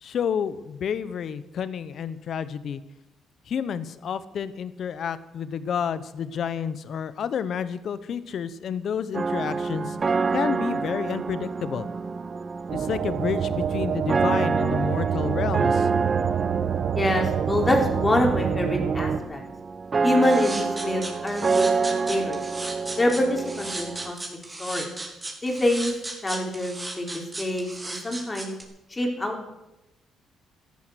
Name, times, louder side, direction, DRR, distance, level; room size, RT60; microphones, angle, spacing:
voice 1, 0.0-2.8 3.5-10.0 10.3-11.9 12.7-15.9, left 7 dB, 60° left, 14 dB, 1.1 m, -30 dB
sound 1, 9.1-24.1, right 4 dB, 35° right, 0.5 m, -28 dB
sound 2, 12.7-19.2, right 8 dB, 65° right, 1.0 m, -27 dB
voice 2, 16.9-19.4 20.0-21.7 22.1-22.4 23.0-24.2 24.6-24.9 25.4-25.9 26.2-28.5 28.9-29.5, left 1 dB, 20° left, 1 dB, 4.1 m, -25 dB
sound 3, 20.2-28.6, right 2 dB, 20° right, 4.0 m, -35 dB
14.0 x 11.0 x 8.1 m, 0.97 s
cardioid pair, 90°, 0 cm